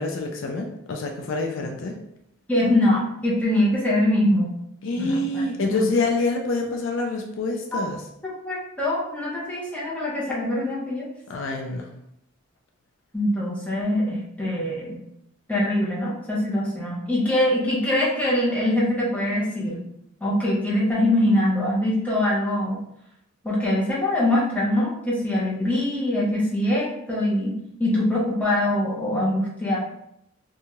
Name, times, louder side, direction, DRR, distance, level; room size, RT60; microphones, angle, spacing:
voice 1, 0.0-1.9 4.8-8.0 11.3-11.9, left 2 dB, 60° left, 2 dB, 0.4 m, -26 dB
voice 2, 2.5-4.5 5.0-5.9 7.7-7.8 8.2-11.1 13.1-15.0 15.5-19.8 20.2-22.8 23.4-29.8, left 1 dB, 5° left, -7 dB, 0.7 m, -23 dB
2.7 x 2.3 x 2.9 m, 0.77 s
head